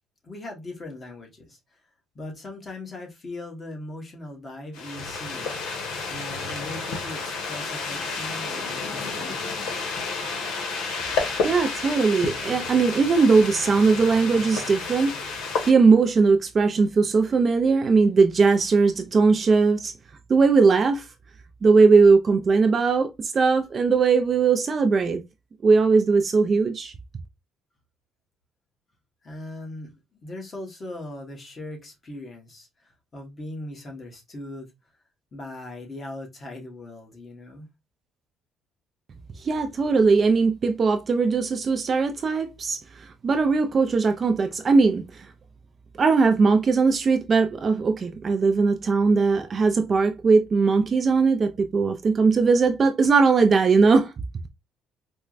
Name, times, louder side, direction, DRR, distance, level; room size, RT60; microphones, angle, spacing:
voice 1, 0.2-1.8 2.1-5.8 6.1-9.7 29.2-29.9 30.2-34.7 35.3-37.7, left 1 dB, 25° left, 1.0 m, -39 dB
sound 1, 4.7-15.7, left 4 dB, 90° left, 0.8 m, -30 dB
voice 2, 11.4-15.1 15.7-19.9 20.3-21.1 21.6-25.2 25.6-26.9 39.4-45.3 46.0-54.1, right 4 dB, 30° right, 0.3 m, -19 dB
4.3 x 2.1 x 2.4 m
cardioid pair, 155°, 0 cm